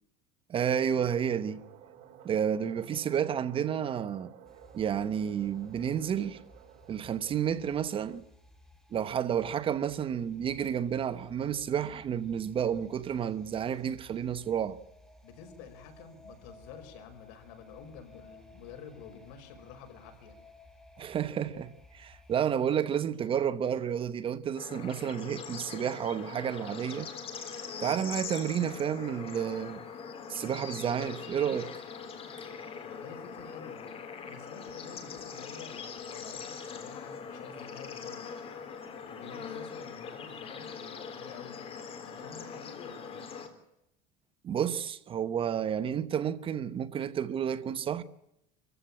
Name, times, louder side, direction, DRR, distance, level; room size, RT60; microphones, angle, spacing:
voice 1, 0.5-1.6 2.2-4.3 4.7-6.4 6.9-8.2 8.9-14.8 21.0-27.1 27.8-29.8 30.3-31.7 44.4-48.0, right 8 dB, 30° right, 1.1 m, -31 dB
sound 1, 1.2-8.2, right 9 dB, 50° right, 4.5 m, -54 dB
sound 2, 4.4-22.4, left 1 dB, 5° left, 3.2 m, -57 dB
voice 2, 15.2-20.4 32.8-33.9 34.2-38.3 39.0-43.3, left 6 dB, 75° left, 5.7 m, -49 dB
Bird / Insect / Frog, 24.6-43.5, left 6 dB, 35° left, 3.5 m, -42 dB
26.0 x 15.5 x 8.8 m
cardioid pair, 140°, 17 cm